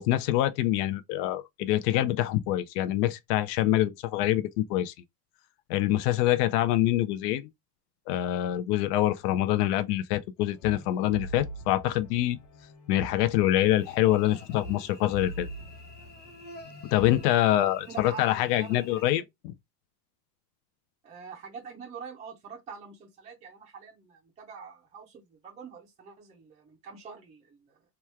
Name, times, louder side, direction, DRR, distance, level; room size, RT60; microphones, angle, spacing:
voice 1, 0.0-4.9 5.7-7.5 8.1-12.4 12.9-15.5 16.9-19.5, left 14 dB, 75° left, 0.5 m, -25 dB
sound 1, 10.4-17.2, right 1 dB, 50° left, 1.0 m, -44 dB
Cricket / Buzz, 13.6-19.0, left 1 dB, 20° left, 0.9 m, -50 dB
voice 2, 17.9-18.9 21.0-27.6, right 6 dB, 15° right, 0.4 m, -45 dB
3.0 x 2.3 x 3.1 m
supercardioid pair, 145°, 48 cm